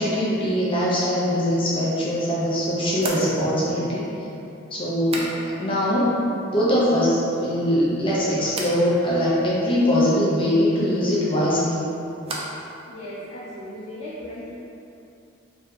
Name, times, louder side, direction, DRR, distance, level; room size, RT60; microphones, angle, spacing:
voice 1, 0.0-4.0 4.7-6.1 6.5-11.8, equal, 25° left, -8 dB, 0.6 m, -22 dB
sound 1, 2.9-5.8 6.1-6.7 7.0-7.6 8.5-8.8 11.2-12.7 13.0-13.6, right 2 dB, 30° right, 0.3 m, -36 dB
voice 2, 12.8-14.5, equal, 75° left, -11 dB, 1.2 m, -37 dB
3.4 x 2.6 x 2.3 m, 2.7 s
head